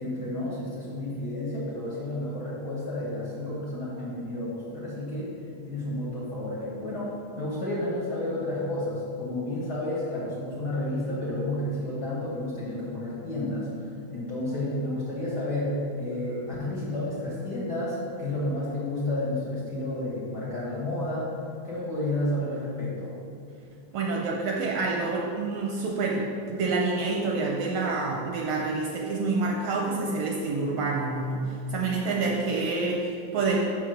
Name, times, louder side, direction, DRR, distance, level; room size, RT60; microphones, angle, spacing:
voice 1, 0.0-5.3 5.6-21.3 21.6-23.1, left 1 dB, 50° left, -7 dB, 1.3 m, -31 dB
voice 2, 23.9-33.6, right 3 dB, 75° right, 0 dB, 1.6 m, -27 dB
6.2 x 4.5 x 6.3 m, 2.5 s
omnidirectional pair, 3.3 m